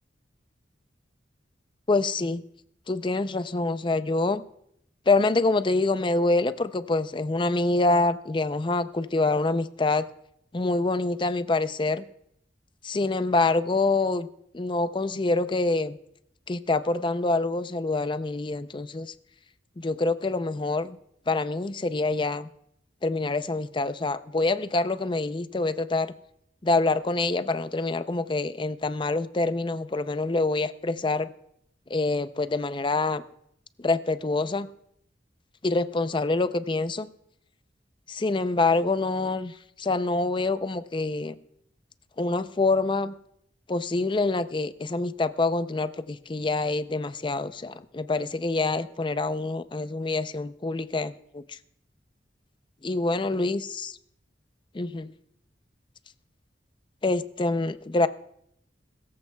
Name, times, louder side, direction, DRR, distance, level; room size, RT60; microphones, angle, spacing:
voice 1, 1.9-2.4 2.9-4.4 5.1-10.0 10.5-12.0 12.8-14.3 14.5-16.0 16.5-19.1 19.8-21.0 21.3-22.5 23.0-26.1 26.6-31.3 31.9-33.2 33.8-34.7 35.6-37.1 38.1-39.5 39.8-41.3 42.2-43.1 43.7-51.6 52.8-53.9 54.7-55.1 57.0-58.1, left 3 dB, 25° left, 12 dB, 0.5 m, -26 dB
22.5 x 14.0 x 2.3 m, 0.73 s
head